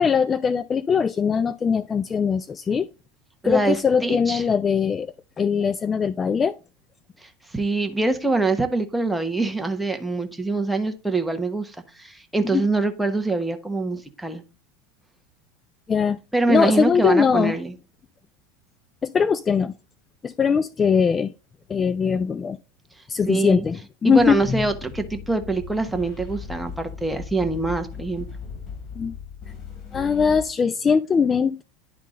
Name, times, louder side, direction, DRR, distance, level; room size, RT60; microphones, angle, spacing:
voice 1, 0.0-2.9 3.4-5.1 5.4-6.5 12.5-12.6 15.9-16.2 16.5-17.6 19.0-19.7 20.2-21.3 21.7-22.6 23.1-24.6 29.0-29.1 29.9-31.6, left 6 dB, 25° left, 0.3 m, -21 dB
voice 2, 3.4-4.4 7.2-14.4 16.3-17.7 23.3-23.6 24.0-28.3, right 3 dB, 5° right, 1.1 m, -24 dB
sound 1, 24.2-30.5, left 6 dB, 45° left, 2.8 m, -38 dB
10.5 x 3.7 x 3.7 m
hypercardioid pair, 95°, 0 cm